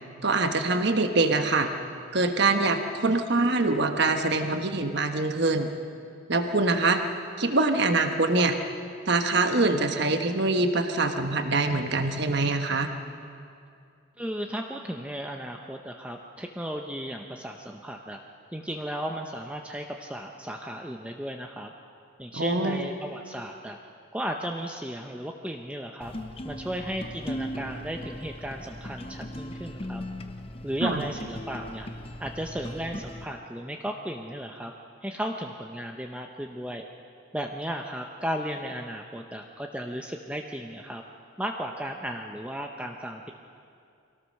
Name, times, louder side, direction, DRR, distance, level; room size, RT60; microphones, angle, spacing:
voice 1, 0.2-1.7 2.1-5.7 6.3-7.0 7.4-8.6 9.1-12.9 22.3-22.9 30.8-31.0, right 3 dB, 55° right, 6 dB, 1.3 m, -24 dB
voice 2, 14.2-18.2 18.5-21.7 22.2-23.8 24.1-26.1 26.4-30.0 30.6-31.9 32.2-34.7 35.0-36.8 37.3-41.0 41.4-43.3, equal, 5° right, 2 dB, 0.7 m, -35 dB
sound 1, 26.0-33.2, equal, 25° left, 0.8 m, -38 dB
24.0 x 17.5 x 6.5 m, 2.4 s
head